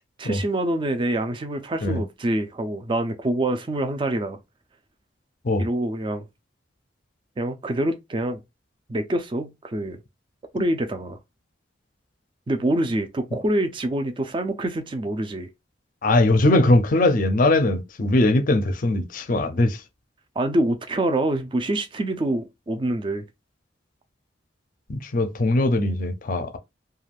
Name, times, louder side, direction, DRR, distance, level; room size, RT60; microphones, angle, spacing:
voice 1, 0.2-4.4 5.6-6.3 7.4-8.4 8.9-10.0 10.5-11.2 12.5-15.5 20.4-23.3, right 1 dB, 25° right, 0.4 m, -25 dB
voice 2, 16.0-19.8 24.9-26.6, left 2 dB, 45° left, 0.5 m, -20 dB
2.4 x 2.3 x 3.3 m
head